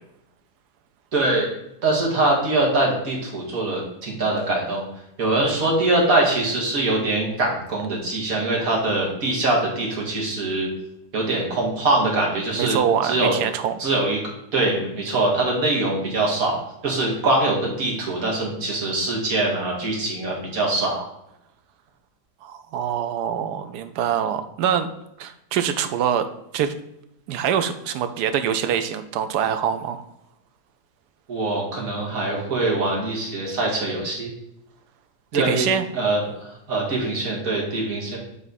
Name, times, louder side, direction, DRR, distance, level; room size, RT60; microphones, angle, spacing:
voice 1, 1.1-1.5 1.8-4.8 5.2-10.7 11.1-13.3 13.8-14.2 14.5-16.6 16.8-21.0 31.3-34.3 35.3-38.2, right 2 dB, 60° right, -3 dB, 2.2 m, -23 dB
voice 2, 12.6-13.7 22.4-24.9 25.2-26.3 26.5-26.7 27.3-30.0 35.3-35.8, right 8 dB, 80° right, 9 dB, 1.2 m, -24 dB
8.1 x 3.5 x 4.0 m, 0.83 s
omnidirectional pair, 1.7 m